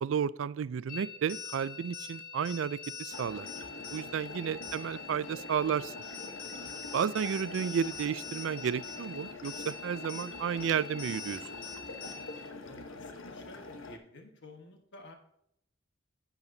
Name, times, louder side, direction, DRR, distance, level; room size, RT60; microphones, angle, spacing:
voice 1, 0.0-3.5 3.9-5.9 6.6-11.4, right 7 dB, 75° right, 19 dB, 0.3 m, -32 dB
sound 1, 0.9-12.5, left 6 dB, 45° left, 1.4 m, -44 dB
sound 2, 3.1-14.0, left 2 dB, 85° left, 1.0 m, -45 dB
voice 2, 12.6-15.1, left 1 dB, 65° left, 4 dB, 1.5 m, -53 dB
10.5 x 8.8 x 2.7 m, 0.74 s
head